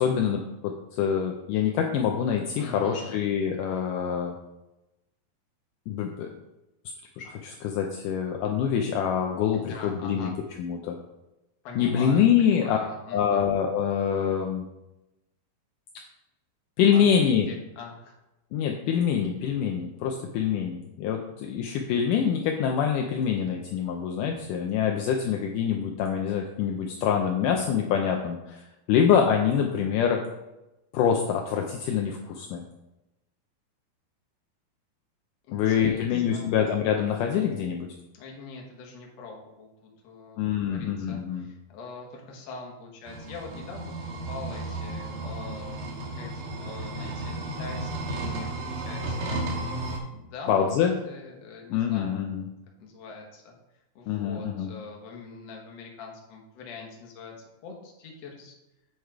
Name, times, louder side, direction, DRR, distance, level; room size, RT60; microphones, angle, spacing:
voice 1, 0.0-4.3 5.9-6.3 7.2-10.3 10.6-11.0 11.8-12.8 13.1-14.7 16.8-17.5 18.5-30.2 30.9-32.6 35.5-37.9 40.4-41.5 50.5-50.9 51.7-52.5 54.1-54.7, left 8 dB, 80° left, 2 dB, 1.9 m, -25 dB
voice 2, 2.6-3.2 9.5-10.4 11.6-13.4 16.9-18.1 35.5-36.5 38.1-43.9 44.3-45.8 46.2-49.5 50.1-52.2 52.8-53.5 54.0-57.3 57.6-58.5, left 3 dB, 55° left, 0 dB, 2.0 m, -43 dB
sound 1, 43.1-50.0, right 2 dB, 70° right, 2.9 m, -33 dB
8.5 x 4.9 x 4.6 m, 0.97 s
omnidirectional pair, 4.4 m